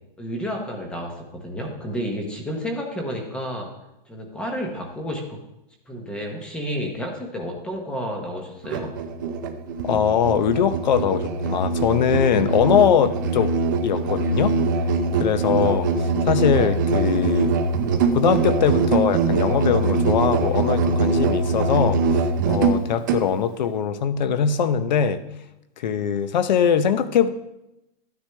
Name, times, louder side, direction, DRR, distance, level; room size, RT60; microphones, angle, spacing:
voice 1, 0.2-3.7 4.1-5.4 5.9-8.9, equal, 5° left, 2 dB, 0.8 m, -31 dB
Musical instrument, 8.6-23.3, right 4 dB, 20° right, 0.5 m, -22 dB
voice 2, 9.8-13.5 13.8-14.6 15.1-17.6 18.1-25.2 25.8-27.3, left 8 dB, 50° left, 12 dB, 0.8 m, -21 dB
13.5 x 9.6 x 3.4 m, 0.89 s
hypercardioid pair, 170°, 29 cm